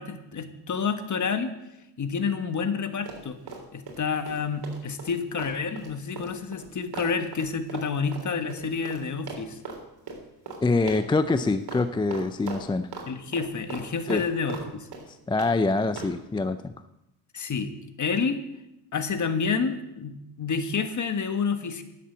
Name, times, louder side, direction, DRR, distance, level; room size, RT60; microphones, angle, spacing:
voice 1, 0.0-1.5 2.0-3.4 3.7-9.6 13.1-14.9 17.3-17.7 18.0-18.4 18.9-21.8, left 5 dB, 40° left, 9 dB, 1.4 m, -29 dB
Run, 3.0-4.0 4.3-9.0 9.3-9.8 10.1-10.2 10.5-10.6 10.9-11.4 11.7-11.8 12.1-13.1 13.3-14.7 14.9-15.5 16.0-16.1, right 4 dB, 50° right, 3.3 m, -38 dB
voice 2, 10.6-12.9 14.1-14.2 15.3-16.7, left 3 dB, 10° left, 11 dB, 0.4 m, -25 dB
10.5 x 7.5 x 7.3 m, 0.89 s
supercardioid pair, 80°, 47 cm